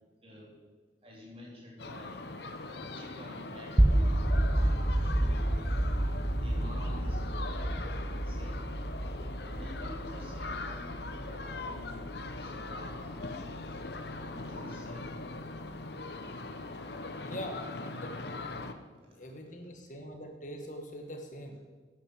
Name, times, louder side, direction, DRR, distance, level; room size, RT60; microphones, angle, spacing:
voice 1, 0.2-0.6 1.0-2.1 2.6-4.5 5.0-5.6 6.2-8.6 9.5-12.1 12.4-13.4 14.2-15.1 19.0-19.1, left 1 dB, 30° right, -4 dB, 3.7 m, -49 dB
sound 1, 1.8-18.7, left 3 dB, 60° left, 0.9 m, -41 dB
sound 2, 3.8-13.8, right 1 dB, 10° right, 0.4 m, -30 dB
voice 2, 17.2-18.6 19.2-21.6, equal, 45° left, 3 dB, 1.8 m, -43 dB
12.0 x 9.3 x 6.4 m, 1.3 s
head